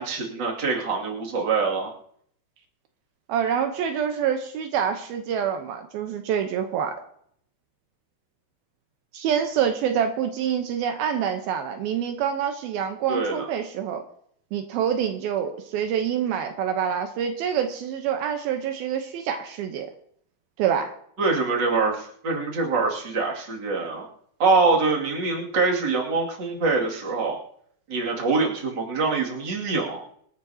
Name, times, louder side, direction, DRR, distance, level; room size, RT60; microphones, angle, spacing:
voice 1, 0.0-1.9 13.1-13.5 21.2-24.1 24.4-27.4 27.9-30.0, right 4 dB, 30° right, -1 dB, 2.7 m, -24 dB
voice 2, 3.3-6.9 9.1-14.0 14.5-19.9 20.6-20.9, right 8 dB, 80° right, 5 dB, 2.8 m, -26 dB
26.0 x 10.5 x 2.9 m, 0.66 s
omnidirectional pair, 4.5 m